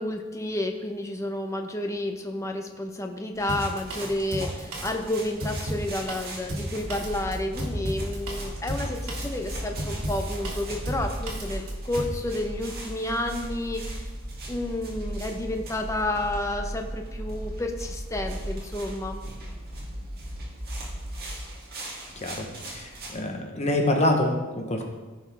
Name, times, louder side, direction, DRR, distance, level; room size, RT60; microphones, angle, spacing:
voice 1, 0.0-14.1 14.5-19.2, left 1 dB, 15° left, 3 dB, 0.7 m, -31 dB
sound 1, 3.3-23.2, right 2 dB, 45° right, 2.1 m, -43 dB
Drum kit, 3.5-12.2, right 1 dB, 85° right, 2.1 m, -34 dB
sound 2, 6.8-21.3, right 1 dB, 60° right, 2.2 m, -36 dB
voice 2, 22.2-24.9, left 1 dB, 30° left, 2 dB, 1.0 m, -26 dB
15.0 x 5.3 x 3.4 m, 1.2 s
head